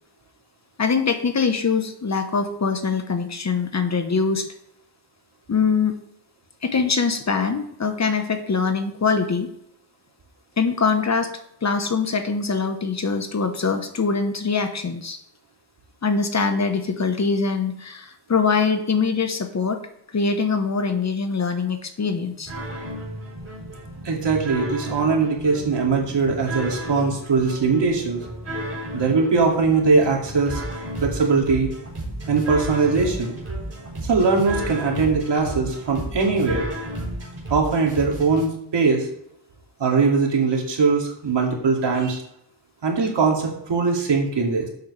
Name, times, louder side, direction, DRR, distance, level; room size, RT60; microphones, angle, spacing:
voice 1, 0.8-4.5 5.5-6.0 6.6-9.5 10.6-15.2 16.0-19.8 20.1-22.5, left 5 dB, 40° left, 7 dB, 1.1 m, -23 dB
sound 1, 22.5-38.4, right 1 dB, 35° right, 4.0 m, -33 dB
voice 2, 24.0-28.2 28.9-30.6 31.0-31.7 32.3-33.3 34.0-36.6 37.5-39.1 39.8-42.2 42.8-44.7, right 4 dB, 75° right, 0 dB, 2.6 m, -21 dB
12.0 x 8.0 x 3.3 m, 0.73 s
wide cardioid pair, 155°, 43 cm